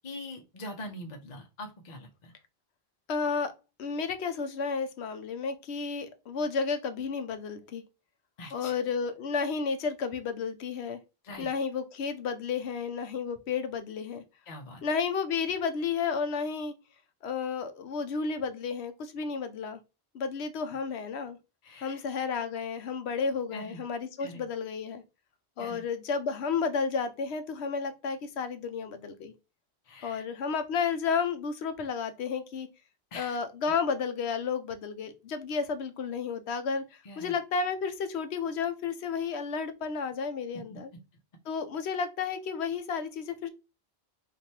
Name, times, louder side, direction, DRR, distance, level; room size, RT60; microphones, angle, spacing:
voice 1, 0.0-2.3 8.4-8.7 11.2-11.5 14.5-14.8 21.6-22.0 23.5-23.8 24.2-24.4 25.6-25.8 29.9-30.2 33.1-33.4 37.1-37.3 40.7-40.8, left 1 dB, 45° left, 0.8 m, -43 dB
voice 2, 3.1-3.5 3.8-7.8 8.5-11.0 11.4-14.2 14.8-16.7 17.2-19.8 20.1-21.4 21.8-25.0 25.6-29.3 30.0-32.7 33.1-40.9 41.5-43.5, left 5 dB, 85° left, 0.9 m, -32 dB
3.2 x 2.6 x 4.2 m
omnidirectional pair, 1.1 m